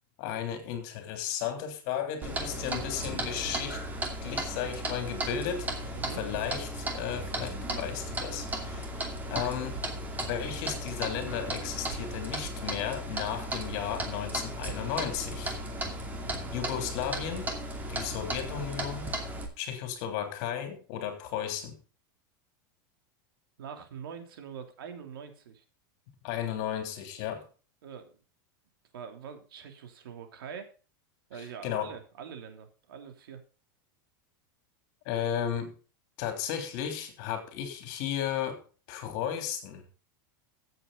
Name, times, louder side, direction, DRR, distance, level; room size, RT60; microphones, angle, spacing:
voice 1, 0.2-3.8 4.2-8.9 9.3-9.8 10.2-15.6 16.5-17.5 17.9-19.1 19.6-21.7 26.2-27.5 31.4-31.9 35.0-35.7 36.2-38.6 38.9-39.8, left 9 dB, 50° left, 7 dB, 3.3 m, -34 dB
Clock, 2.2-19.5, right 1 dB, 15° right, 2.5 m, -35 dB
voice 2, 5.9-6.2 23.6-25.6 27.8-28.2 28.9-30.7 31.3-33.4, right 7 dB, 85° right, 6 dB, 3.3 m, -44 dB
15.5 x 7.8 x 4.0 m, 0.36 s
supercardioid pair, 155°, 12 cm